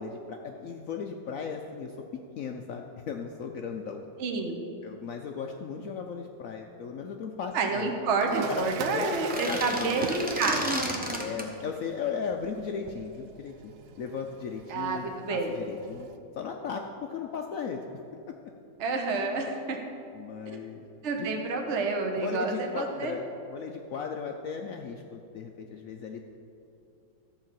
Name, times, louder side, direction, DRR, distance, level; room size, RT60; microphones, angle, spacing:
voice 1, 0.0-2.0 2.4-4.0 4.8-7.9 8.5-8.6 8.9-9.9 11.1-16.1 16.3-17.8 18.3-18.4 20.1-20.8 21.2-21.3 22.2-26.3, left 6 dB, 75° left, 3 dB, 0.7 m, -36 dB
voice 2, 4.2-4.6 7.5-10.7 14.7-15.5 18.8-19.8 21.0-23.1, right 3 dB, 45° right, 3 dB, 1.1 m, -29 dB
Toilet flush, 8.2-16.2, right 8 dB, 80° right, 1.3 m, -41 dB
sound 1, 9.1-11.5, equal, 10° right, 0.5 m, -32 dB
13.5 x 4.7 x 7.5 m, 2.7 s
omnidirectional pair, 2.0 m